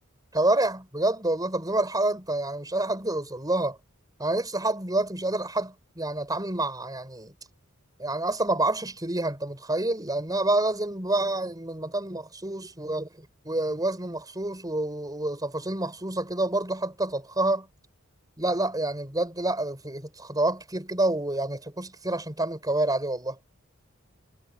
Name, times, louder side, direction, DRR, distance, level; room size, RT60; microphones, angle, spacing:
voice 1, 0.3-3.8 4.2-7.3 8.0-17.7 18.4-23.4, right 2 dB, 20° right, 7.0 m, -28 dB
head